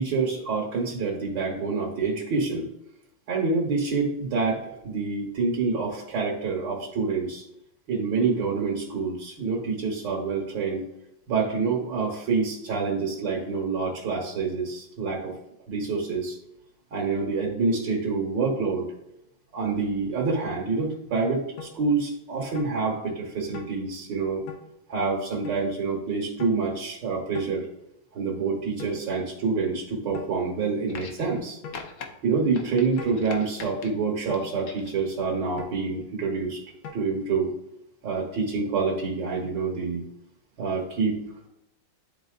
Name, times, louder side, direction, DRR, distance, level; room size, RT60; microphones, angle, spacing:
voice 1, 0.0-2.7 3.3-7.4 7.9-10.8 11.3-15.3 15.7-16.4 16.9-18.9 19.5-24.4 24.9-27.6 28.1-31.6 32.2-36.6 36.9-37.5 38.0-40.0 40.6-41.2, right 4 dB, 70° right, -2 dB, 1.8 m, -27 dB
sound 1, 21.6-21.8 22.6-22.8 23.5-23.8 24.5-24.7 25.4-25.6 26.4-26.6 27.3-27.6 28.8-29.0 30.1-30.4 31.6-31.9 33.0-33.2 34.3-34.5 35.6-35.8 36.8-37.0, left 5 dB, 85° left, 1.6 m, -40 dB
running sound, 30.9-31.4 31.7-32.1 32.5-33.9 34.3-35.0 36.0-36.1, left 5 dB, 60° left, 0.8 m, -41 dB
10.5 x 3.9 x 2.4 m, 0.83 s
omnidirectional pair, 2.0 m